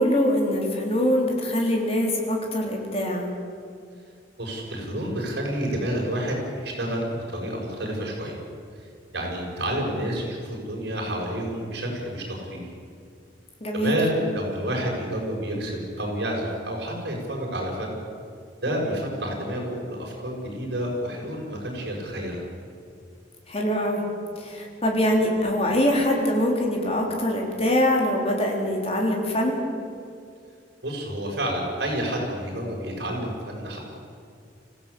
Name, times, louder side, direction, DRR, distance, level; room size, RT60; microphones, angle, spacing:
voice 1, 0.0-3.3 13.6-14.0 23.5-24.0 24.4-29.6, left 1 dB, 35° left, 0 dB, 4.0 m, -23 dB
voice 2, 4.4-8.4 8.7-12.6 13.7-18.0 18.6-22.4 30.8-33.8, right 1 dB, 60° right, -1 dB, 7.1 m, -29 dB
25.5 x 16.0 x 8.6 m, 2.4 s
head